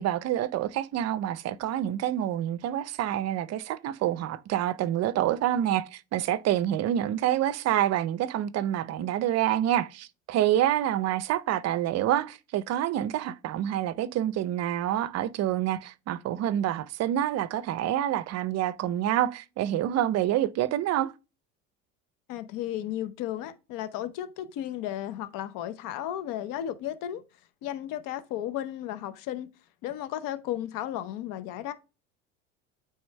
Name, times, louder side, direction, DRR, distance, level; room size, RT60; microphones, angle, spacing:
voice 1, 0.0-21.1, right 12 dB, 45° right, 0.6 m, -27 dB
voice 2, 22.3-27.2 27.6-29.5 29.8-31.7, left 12 dB, 60° left, 0.9 m, -34 dB
8.7 x 3.5 x 3.2 m
supercardioid pair, 90°, 37 cm